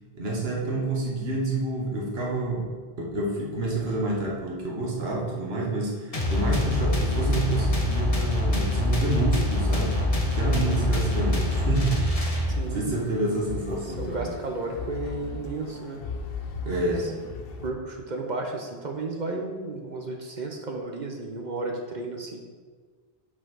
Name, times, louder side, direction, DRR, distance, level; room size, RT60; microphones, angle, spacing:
voice 1, 0.1-10.0 10.3-14.3 16.6-17.1, right 2 dB, 70° right, -3 dB, 1.6 m, -28 dB
sound 1, 6.1-12.8, left 1 dB, 35° left, 1.2 m, -25 dB
sound 2, 12.4-17.7, left 4 dB, 65° left, 0.9 m, -37 dB
voice 2, 12.5-12.9 13.7-16.0 16.7-17.1 17.6-22.4, right 3 dB, 45° right, 2 dB, 0.9 m, -33 dB
5.6 x 5.1 x 6.3 m, 1.5 s
omnidirectional pair, 1.1 m